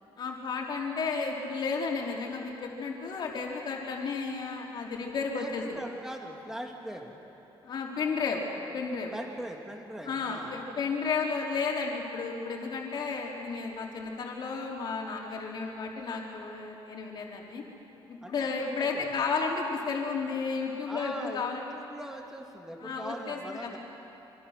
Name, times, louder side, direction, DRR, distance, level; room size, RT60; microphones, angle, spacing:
voice 1, 0.2-5.8 7.6-8.5 8.7-9.1 10.1-17.6 18.1-21.6 22.8-23.8, left 4 dB, 50° left, -1 dB, 3.7 m, -33 dB
voice 2, 5.3-7.2 9.1-10.6 18.2-19.1 20.3-23.8, equal, 5° right, 2 dB, 2.2 m, -41 dB
26.5 x 25.5 x 6.6 m, 3.0 s
cardioid pair, 175°, 10 cm